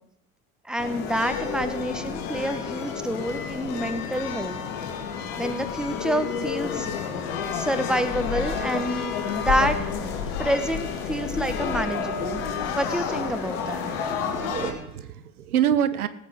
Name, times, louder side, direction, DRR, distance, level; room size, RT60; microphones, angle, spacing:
voice 1, 0.6-4.6 5.4-6.9 7.5-9.8 10.4-12.4 12.7-13.9, right 1 dB, ahead, 9 dB, 1.3 m, -28 dB
sound 1, 0.8-14.7, left 6 dB, 60° left, 2.3 m, -30 dB
voice 2, 14.3-16.1, right 9 dB, 80° right, 14 dB, 0.8 m, -26 dB
17.5 x 8.3 x 4.9 m, 0.87 s
figure-of-eight pair, 60°, 43 cm